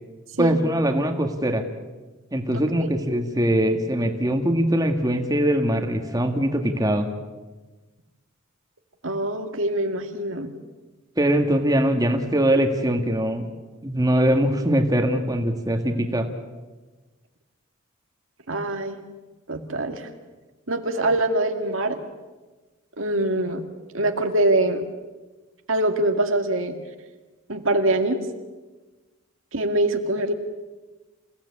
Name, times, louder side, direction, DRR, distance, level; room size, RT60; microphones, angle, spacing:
voice 1, 0.4-1.6 2.3-7.1 11.2-13.5 13.8-16.3, right 1 dB, 20° right, 4 dB, 1.9 m, -22 dB
voice 2, 9.0-10.5 18.5-19.0 19.5-20.1 20.7-22.0 23.0-23.6 23.9-24.8 25.7-26.8 27.5-28.2 29.5-30.3, right 1 dB, 75° right, 5 dB, 2.1 m, -23 dB
28.0 x 16.5 x 8.5 m, 1.2 s
head